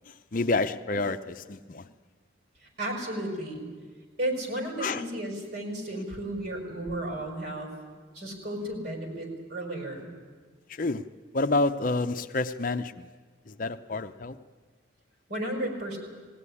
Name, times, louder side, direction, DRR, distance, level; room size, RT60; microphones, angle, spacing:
voice 1, 0.1-1.8 4.8-5.0 10.7-11.0 11.3-13.1 13.5-14.4, left 3 dB, 45° left, 9 dB, 0.6 m, -29 dB
voice 2, 2.8-3.6 4.2-7.7 8.1-10.1 15.3-16.0, right 1 dB, 55° right, 2 dB, 5.4 m, -33 dB
20.0 x 17.0 x 9.8 m, 1.5 s
head